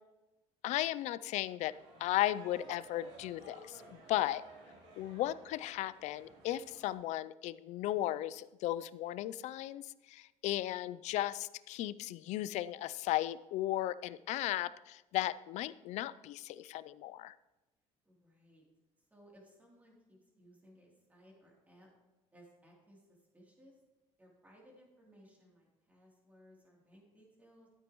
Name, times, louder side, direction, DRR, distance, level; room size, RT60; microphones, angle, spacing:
voice 1, 0.6-1.7 2.0-4.4 5.0-17.3, left 14 dB, 70° left, 17 dB, 0.4 m, -36 dB
sound 1, 1.6-6.9, right 2 dB, 80° right, 3.8 m, -56 dB
voice 2, 18.0-18.6 19.0-21.9 22.3-23.8 24.2-27.7, equal, 10° right, -3 dB, 3.0 m, -62 dB
13.0 x 8.7 x 3.0 m, 1.1 s
cardioid pair, 125°, 12 cm